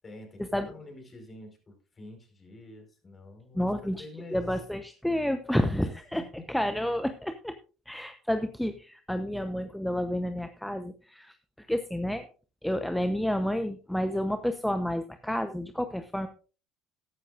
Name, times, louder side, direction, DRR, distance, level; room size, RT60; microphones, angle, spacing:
voice 1, 0.0-4.5 5.8-6.2, left 2 dB, 30° left, 3 dB, 4.8 m, -47 dB
voice 2, 3.5-4.1 4.3-6.2 6.5-7.5 7.9-12.3 12.6-16.3, equal, 5° left, 8 dB, 0.9 m, -30 dB
14.0 x 11.5 x 2.5 m, 0.35 s
hypercardioid pair, 70°, 0 cm